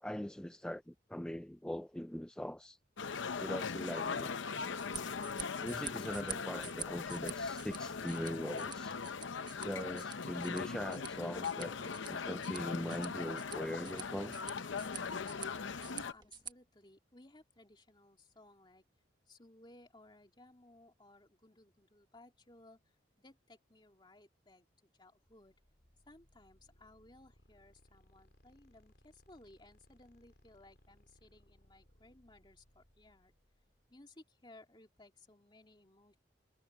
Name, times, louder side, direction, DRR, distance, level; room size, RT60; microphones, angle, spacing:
voice 1, 0.0-2.8 3.4-4.3 5.6-9.0 9.6-14.3, equal, 5° left, 0.4 m, -41 dB
sound 1, 3.0-16.1, left 5 dB, 80° left, 0.7 m, -40 dB
sound 2, 4.6-16.5, right 7 dB, 25° right, 1.1 m, -49 dB
voice 2, 15.9-18.8 19.3-24.7 25.0-25.5 26.1-33.3 33.9-36.2, left 2 dB, 25° left, 2.6 m, -60 dB
sound 3, 25.2-34.0, equal, 55° left, 3.4 m, -67 dB
head